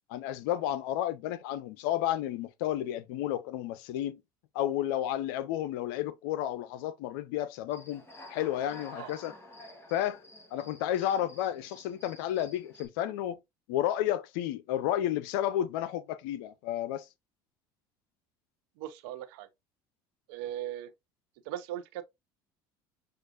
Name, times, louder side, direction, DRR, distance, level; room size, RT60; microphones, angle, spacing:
voice 1, 0.1-4.2 4.5-8.0 8.3-9.3 9.9-10.2 10.5-13.4 13.7-17.1, left 12 dB, 75° left, 0.5 m, -31 dB
Human voice / Cricket, 7.7-12.9, left 1 dB, 20° left, 1.8 m, -51 dB
voice 2, 18.8-19.5 20.3-20.9 21.5-22.0, right 12 dB, 75° right, 0.7 m, -38 dB
6.2 x 2.4 x 2.5 m
hypercardioid pair, 80°, 12 cm